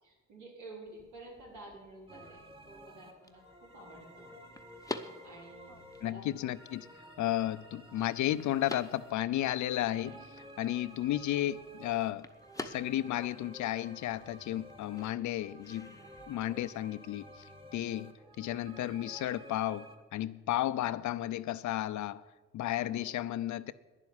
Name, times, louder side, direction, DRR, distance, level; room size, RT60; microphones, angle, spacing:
voice 1, 0.0-4.3 5.0-6.3 10.0-10.2 18.2-18.6 20.8-21.0 22.8-23.2, right 2 dB, 80° right, 4.9 m, -52 dB
sound 1, 0.9-16.3, left 2 dB, 10° left, 0.9 m, -49 dB
sound 2, 2.1-20.0, right 1 dB, 15° right, 1.6 m, -53 dB
voice 2, 6.0-6.9 7.2-10.1 10.6-12.3 12.6-16.0 16.3-17.3 17.7-19.9 20.1-22.2 22.5-23.7, left 13 dB, 70° left, 0.6 m, -33 dB
10.5 x 7.3 x 9.6 m
cardioid pair, 90°, 30 cm